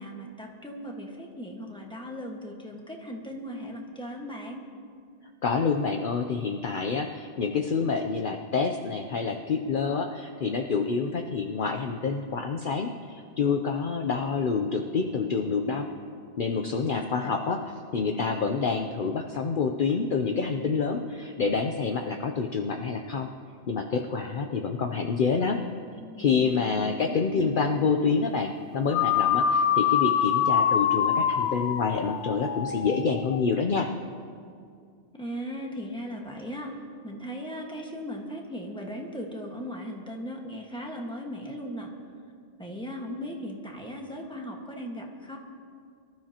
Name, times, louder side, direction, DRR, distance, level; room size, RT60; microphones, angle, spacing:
voice 1, 0.0-4.6 16.5-17.3 26.0-27.5 35.1-36.7 37.0-41.9 42.6-45.4, equal, 5° left, 0 dB, 1.4 m, -38 dB
voice 2, 5.4-15.9 16.4-23.3 23.7-25.6 26.2-33.9, left 5 dB, 55° left, 4 dB, 0.8 m, -27 dB
sound 1, 28.9-33.4, left 8 dB, 80° left, 0.9 m, -25 dB
24.0 x 12.5 x 2.9 m, 2.2 s
omnidirectional pair, 1.1 m